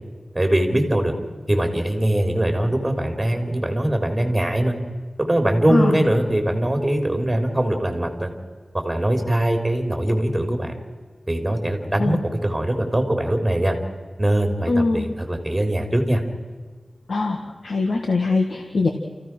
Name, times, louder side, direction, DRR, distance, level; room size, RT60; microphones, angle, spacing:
voice 1, 0.3-1.1 1.5-4.7 5.2-8.3 8.8-10.8 11.3-13.8 14.2-16.2, right 1 dB, 15° right, 4 dB, 3.8 m, -22 dB
voice 2, 5.7-6.1 12.0-12.2 14.7-15.1 17.1-18.9, left 3 dB, 75° left, 3 dB, 1.8 m, -22 dB
29.0 x 15.5 x 6.2 m, 1.4 s
wide cardioid pair, 60°, 0 cm